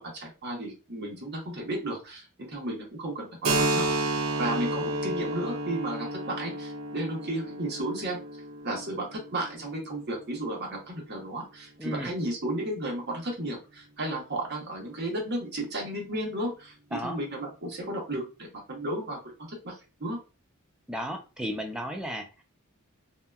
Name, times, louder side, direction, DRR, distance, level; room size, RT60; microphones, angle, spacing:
voice 1, 0.0-3.9 4.4-8.2 8.6-19.2 19.5-20.2, right 1 dB, 55° right, -2 dB, 1.0 m, -33 dB
Keyboard (musical), 3.4-10.8, right 2 dB, 75° right, 0.6 m, -31 dB
voice 2, 11.8-12.1 16.9-17.2 20.9-22.4, equal, 5° right, 3 dB, 0.4 m, -34 dB
2.8 x 2.2 x 2.3 m, 0.31 s
head